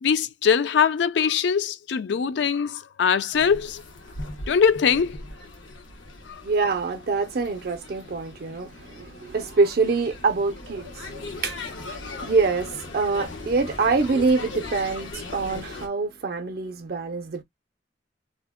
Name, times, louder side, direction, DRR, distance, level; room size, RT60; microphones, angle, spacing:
voice 1, 0.0-3.8 4.5-5.2 6.3-6.4, left 7 dB, 65° left, 0.4 m, -22 dB
sound 1, 3.3-15.9, left 2 dB, 90° left, 0.9 m, -39 dB
voice 2, 6.4-11.1 11.4-11.6 12.2-17.4, right 4 dB, 55° right, 0.4 m, -25 dB
2.7 x 2.1 x 3.5 m
head